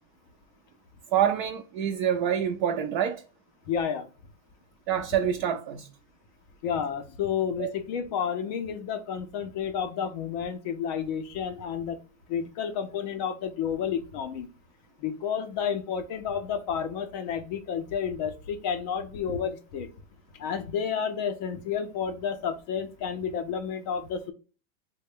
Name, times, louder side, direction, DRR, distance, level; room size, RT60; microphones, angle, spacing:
voice 1, 1.1-3.2 4.9-5.9 7.6-7.7, right 9 dB, 40° right, 0.4 m, -26 dB
voice 2, 3.7-4.1 6.6-12.0 12.3-14.5 15.0-19.9 20.4-24.3, left 7 dB, 35° left, 0.4 m, -31 dB
3.2 x 2.1 x 3.5 m
supercardioid pair, 145°, 40 cm